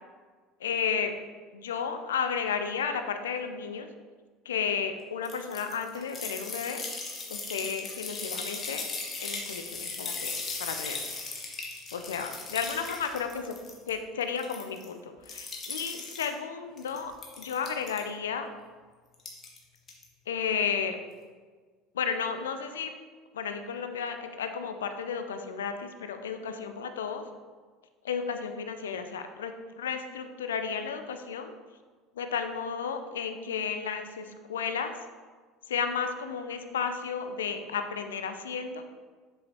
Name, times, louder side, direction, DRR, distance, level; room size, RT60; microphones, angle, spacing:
voice 1, 0.6-1.2 1.5-3.9 4.5-6.8 7.3-8.9 9.2-10.3 10.6-11.0 11.9-13.5 13.9-18.5 20.3-21.0 21.9-22.9 23.3-27.2 28.0-31.5 32.2-34.9 35.7-38.8, left 6 dB, 75° left, 8 dB, 0.5 m, -33 dB
sound 1, 5.2-13.9 14.2-14.9 15.2-16.3 16.8-18.0 19.1-19.6 19.9-20.0, left 4 dB, 35° left, 1.8 m, -37 dB
7.6 x 7.2 x 2.8 m, 1.5 s
figure-of-eight pair, 65°, 0 cm